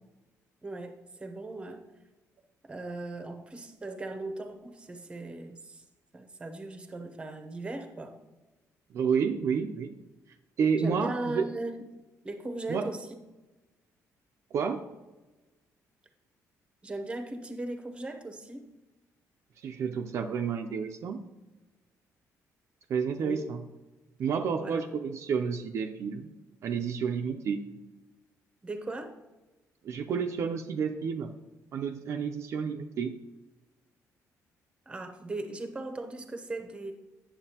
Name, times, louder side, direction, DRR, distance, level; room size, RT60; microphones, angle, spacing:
voice 1, 0.6-1.9 2.6-5.8 6.1-8.2 10.8-11.8 12.2-13.1 16.8-18.7 23.2-23.4 24.6-24.8 28.6-29.1 34.9-36.9, right 2 dB, 15° right, 6 dB, 0.7 m, -38 dB
voice 2, 8.9-9.9 10.6-11.5 12.7-12.9 14.5-14.8 19.6-21.2 22.9-23.6 24.2-26.3 26.6-27.7 29.8-31.3 31.7-33.2, right 6 dB, 55° right, 4 dB, 0.4 m, -30 dB
8.8 x 7.1 x 2.8 m, 1.1 s
cardioid pair, 150°, 6 cm